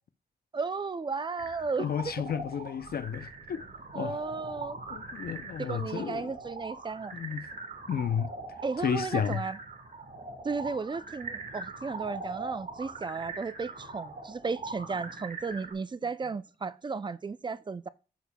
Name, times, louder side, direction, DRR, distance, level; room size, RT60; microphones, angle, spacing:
voice 1, 0.5-2.1 3.9-4.8 5.6-7.1 8.6-9.6 10.4-17.9, right 4 dB, 30° right, 0.4 m, -34 dB
sound 1, 1.4-15.7, right 3 dB, 55° right, 1.3 m, -42 dB
voice 2, 1.8-3.6 3.9-4.2 4.9-6.3 7.1-7.5 7.9-8.3 8.8-9.4, left 8 dB, 70° left, 0.5 m, -32 dB
9.1 x 6.9 x 2.2 m
wide cardioid pair, 115°, 17 cm